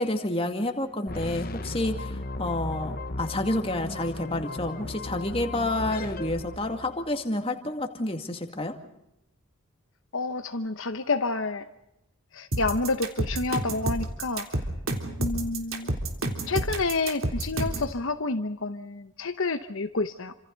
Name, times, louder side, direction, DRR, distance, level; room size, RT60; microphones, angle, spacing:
voice 1, 0.0-8.7, left 1 dB, 25° left, 5 dB, 2.2 m, -29 dB
sound 1, 1.1-7.2, left 2 dB, 40° left, 1.0 m, -36 dB
voice 2, 10.1-11.7 12.3-14.6 15.2-15.9 16.4-20.4, left 3 dB, 60° left, 8 dB, 1.0 m, -29 dB
sound 2, 12.5-17.9, right 1 dB, 65° right, 3.4 m, -29 dB
29.0 x 26.5 x 4.1 m, 0.85 s
head